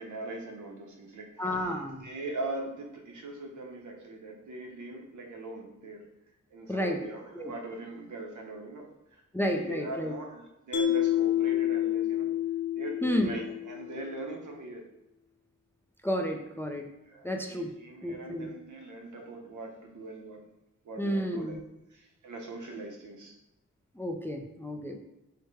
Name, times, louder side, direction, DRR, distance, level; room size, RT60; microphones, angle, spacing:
voice 1, 0.0-6.1 6.5-9.2 9.5-12.3 12.7-14.9 17.0-20.4 20.8-21.6 21.9-23.4, right 2 dB, 85° right, 2 dB, 0.8 m, -41 dB
voice 2, 1.4-2.1 6.7-7.0 7.3-7.5 9.3-10.1 13.0-13.3 16.0-16.9 17.2-17.7 18.0-18.5 21.0-21.6 24.0-25.0, equal, 10° left, 3 dB, 0.3 m, -31 dB
Mallet percussion, 10.7-14.0, left 12 dB, 85° left, 0.5 m, -28 dB
4.7 x 2.2 x 4.6 m, 0.93 s
wide cardioid pair, 145°, 29 cm